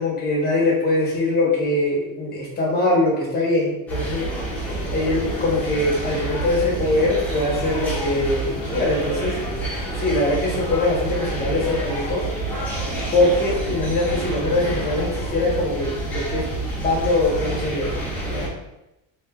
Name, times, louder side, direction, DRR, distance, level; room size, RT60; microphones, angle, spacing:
voice 1, 0.0-4.3 4.9-9.4 9.9-12.2 13.1-16.5 16.8-18.5, left 2 dB, 20° left, -4 dB, 1.1 m, -22 dB
sound 1, 3.9-18.5, right 2 dB, 5° left, 0.7 m, -28 dB
2.8 x 2.6 x 2.3 m, 0.92 s
supercardioid pair, 110°, 49 cm